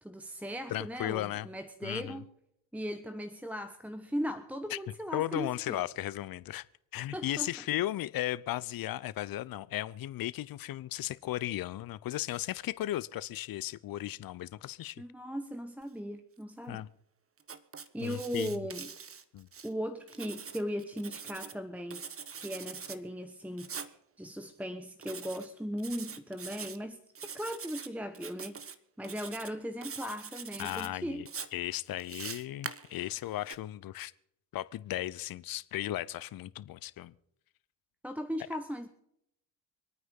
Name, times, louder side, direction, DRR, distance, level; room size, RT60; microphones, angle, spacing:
voice 1, 0.0-2.3 2.7-5.8 7.1-7.5 15.0-16.9 17.9-18.9 19.6-22.0 22.3-28.6 29.0-31.3 38.0-38.9, equal, 5° right, 1.2 m, -38 dB
voice 2, 0.7-1.5 1.8-2.2 4.7-4.8 5.1-6.6 6.9-15.0 16.7-16.9 18.0-18.6 19.3-19.5 30.6-34.1 34.5-37.1, left 14 dB, 45° left, 0.8 m, -36 dB
Writing, 17.4-19.7 20.1-21.6 21.9-23.0 23.6-23.9 25.0-25.5 25.8-26.8 27.1-27.9 28.1-28.7 29.0-29.5 29.8-30.9 31.3-33.5, right 6 dB, 30° right, 1.3 m, -43 dB
25.0 x 9.3 x 5.5 m
hypercardioid pair, 55°, 47 cm